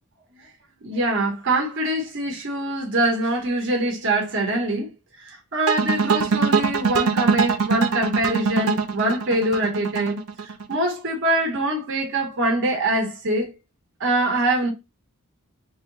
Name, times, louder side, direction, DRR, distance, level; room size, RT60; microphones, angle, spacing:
voice 1, 0.8-4.9 5.2-13.5 14.0-14.7, right 1 dB, 60° right, 1.1 m, -24 dB
sound 1, 5.7-10.8, right 5 dB, 75° right, 0.6 m, -22 dB
3.6 x 2.8 x 3.9 m
head